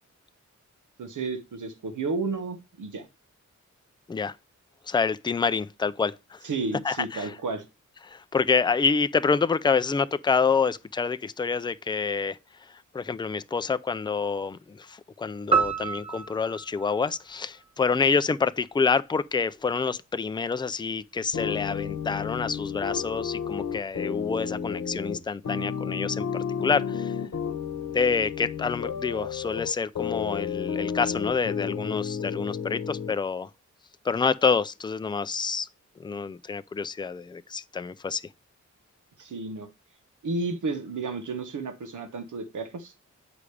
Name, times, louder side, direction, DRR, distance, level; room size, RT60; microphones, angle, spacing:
voice 1, 1.0-3.1 6.4-7.6 39.2-39.7 40.2-42.9, right 3 dB, 85° right, 1.0 m, -32 dB
voice 2, 4.9-6.4 6.8-7.3 8.0-27.1 27.9-33.5 34.0-35.7 36.0-38.2, left 5 dB, 15° left, 0.3 m, -27 dB
sound 1, 15.5-18.0, right 5 dB, 20° right, 1.0 m, -29 dB
sound 2, 21.3-33.1, left 7 dB, 70° left, 1.0 m, -32 dB
8.4 x 4.9 x 3.2 m
wide cardioid pair, 120°, 30 cm